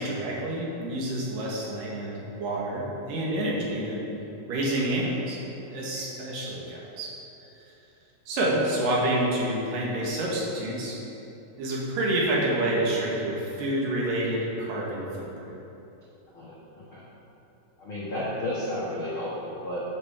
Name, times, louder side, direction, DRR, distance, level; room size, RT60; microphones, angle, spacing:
voice 1, 0.0-4.1 4.5-5.4 5.7-7.1 8.3-11.0 11.6-15.5, right 1 dB, 65° right, -4 dB, 2.8 m, -28 dB
voice 2, 16.3-17.0 17.8-19.8, left 1 dB, 75° left, -8 dB, 1.2 m, -33 dB
10.5 x 7.4 x 3.6 m, 3.0 s
omnidirectional pair, 4.5 m